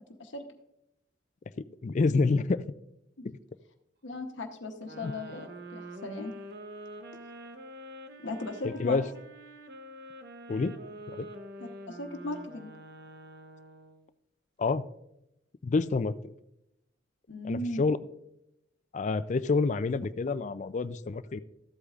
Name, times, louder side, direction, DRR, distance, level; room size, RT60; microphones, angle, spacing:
voice 1, 1.8-2.6 3.2-3.3 5.0-5.1 8.6-9.0 10.5-10.7 11.1-11.3 14.6-14.9 15.6-16.3 17.4-18.0 18.9-21.4, left 4 dB, 40° left, 13 dB, 0.3 m, -28 dB
voice 2, 4.0-6.3 8.2-9.0 11.6-12.7 17.3-17.9, left 2 dB, 75° left, 5 dB, 1.0 m, -37 dB
sound 1, 4.8-14.0, right 1 dB, 55° right, 0.8 m, -46 dB
14.0 x 8.2 x 2.4 m, 0.84 s
head